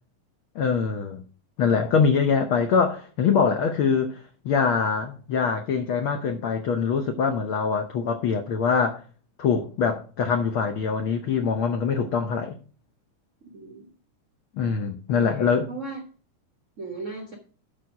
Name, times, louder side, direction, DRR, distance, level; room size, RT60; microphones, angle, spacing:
voice 1, 0.5-1.2 1.6-9.0 9.4-12.5 14.6-15.7, left 6 dB, 85° left, 1.1 m, -24 dB
voice 2, 13.4-13.9 15.1-16.0 16.8-17.3, right 3 dB, 85° right, 0.6 m, -37 dB
11.5 x 5.4 x 4.8 m
omnidirectional pair, 3.5 m